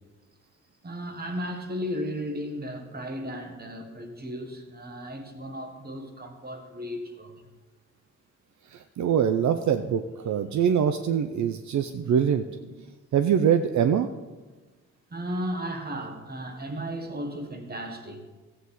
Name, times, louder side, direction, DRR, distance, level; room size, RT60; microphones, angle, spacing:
voice 1, 0.8-7.3 15.1-18.2, equal, 30° right, 1.5 m, -35 dB
voice 2, 8.7-12.4 13.1-14.1, right 8 dB, 70° right, 0.6 m, -24 dB
14.5 x 8.0 x 4.1 m
wide cardioid pair, 115°, 30 cm